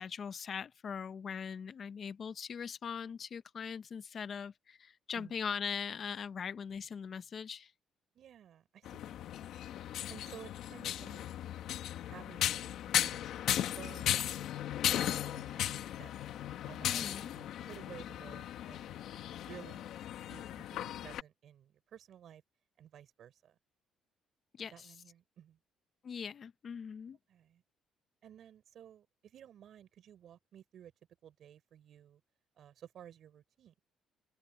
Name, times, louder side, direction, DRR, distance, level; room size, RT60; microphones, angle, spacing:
voice 1, 0.0-7.7 16.8-17.3 24.6-24.9 26.0-27.2, left 6 dB, 45° left, 0.8 m, -41 dB
voice 2, 8.1-9.5 10.1-11.2 12.0-12.6 12.9-14.2 14.9-16.2 16.7-18.9 19.4-19.9 20.3-22.4 22.8-23.6 24.7-25.6 27.3-27.6 28.2-30.9 31.2-32.2 32.6-33.7, right 10 dB, 60° right, 6.5 m, -54 dB
sound 1, 8.9-21.2, left 11 dB, 75° left, 1.7 m, -36 dB
open air
cardioid pair, 115°, 0 cm